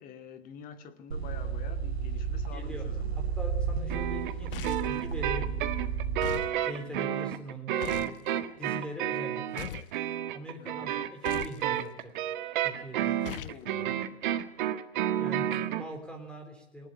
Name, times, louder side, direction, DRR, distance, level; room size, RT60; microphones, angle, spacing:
voice 1, 0.0-3.2 10.6-11.0 13.2-14.0, left 7 dB, 25° left, 2.2 m, -47 dB
sound 1, 1.1-6.4, right 6 dB, 80° right, 3.1 m, -33 dB
voice 2, 2.5-2.8 3.2-5.6 6.0-9.8 10.3-12.1 12.6-13.4 13.7-14.1 15.2-16.9, equal, 5° left, 3.5 m, -42 dB
sound 2, 3.9-15.9, right 11 dB, 50° right, 1.7 m, -31 dB
sound 3, 4.5-5.0 6.2-6.5 7.8-8.2 9.6-10.0 11.2-11.6 13.2-13.6, left 11 dB, 60° left, 1.0 m, -39 dB
19.0 x 18.5 x 8.8 m
hypercardioid pair, 120°, 32 cm